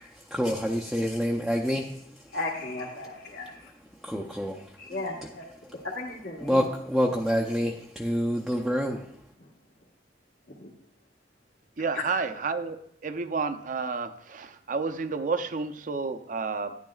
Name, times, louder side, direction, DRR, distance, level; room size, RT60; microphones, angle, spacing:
voice 1, 0.0-2.4 4.0-4.8 5.6-5.8 6.4-9.2, equal, ahead, -3 dB, 0.5 m, -28 dB
voice 2, 2.3-3.7 4.8-5.4 5.7-6.6 9.4-9.5 10.5-10.7 11.9-12.0, left 2 dB, 65° left, -4 dB, 1.4 m, -35 dB
voice 3, 11.8-16.8, right 4 dB, 45° right, 10 dB, 0.5 m, -31 dB
12.0 x 9.6 x 2.3 m, 0.71 s
head